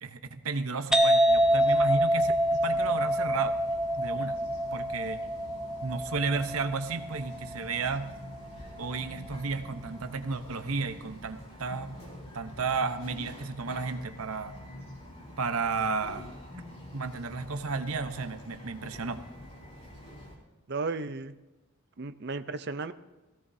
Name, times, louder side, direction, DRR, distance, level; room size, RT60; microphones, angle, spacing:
voice 1, 0.0-2.3 2.6-3.6 4.0-4.4 4.7-5.2 5.8-8.1 8.8-12.0 12.3-14.5 15.4-16.3 16.9-19.2, right 4 dB, 75° right, 9 dB, 0.9 m, -33 dB
sound 1, 0.9-8.4, equal, 5° right, 0.5 m, -26 dB
Bird vocalization bird call bird song, 1.3-20.4, left 1 dB, 30° left, 3.7 m, -47 dB
voice 2, 20.7-21.3 22.0-22.9, right 3 dB, 50° right, 11 dB, 0.6 m, -34 dB
17.5 x 16.0 x 2.7 m, 1.1 s
head